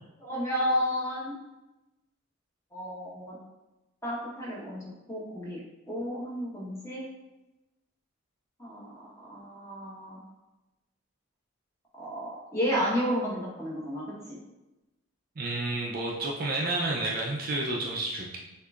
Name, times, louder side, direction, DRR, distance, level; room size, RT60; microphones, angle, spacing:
voice 1, 0.2-1.4 2.7-3.3 4.0-4.8 5.1-5.6 5.9-7.0 8.6-10.2 12.0-14.4, equal, 15° left, -6 dB, 1.1 m, -32 dB
voice 2, 15.4-18.4, right 2 dB, 45° right, -2 dB, 0.5 m, -30 dB
6.4 x 2.6 x 2.4 m, 1.0 s
head